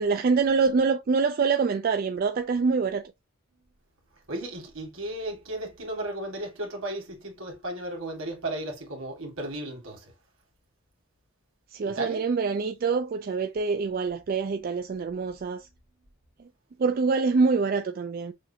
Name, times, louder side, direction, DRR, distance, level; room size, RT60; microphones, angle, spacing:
voice 1, 0.0-3.1 11.7-15.7 16.8-18.3, right 4 dB, 45° right, 0.3 m, -25 dB
voice 2, 4.3-10.1 11.9-12.2, right 1 dB, 70° right, 1.9 m, -35 dB
6.3 x 2.5 x 2.7 m
head